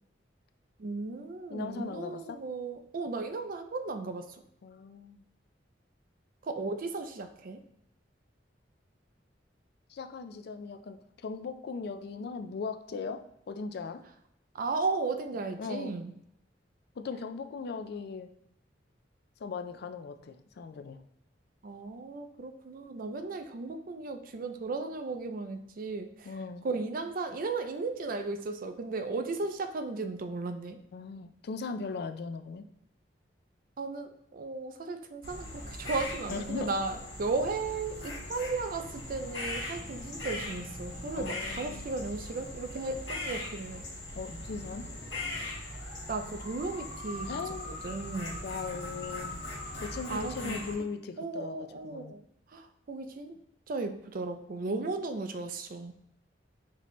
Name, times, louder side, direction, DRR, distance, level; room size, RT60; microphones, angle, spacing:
voice 1, 0.8-4.4 6.4-7.6 14.5-16.1 21.6-26.3 26.6-30.8 33.8-43.8 46.1-47.3 47.8-48.4 50.1-50.7 51.2-52.2 52.5-53.4 53.7-55.9, right 3 dB, 50° right, 8 dB, 0.4 m, -35 dB
voice 2, 1.5-2.4 4.6-5.2 9.9-14.0 15.4-16.0 17.0-18.3 19.4-21.0 26.2-26.7 30.9-32.7 36.3-36.7 41.2-41.9 44.1-44.9 47.2-47.8 48.4-49.4 49.8-52.1 53.8-54.0 54.7-55.0, left 4 dB, 60° left, 8 dB, 0.4 m, -39 dB
sound 1, 35.2-50.7, left 1 dB, 80° left, 1.8 m, -40 dB
5.9 x 2.8 x 3.1 m, 0.78 s
head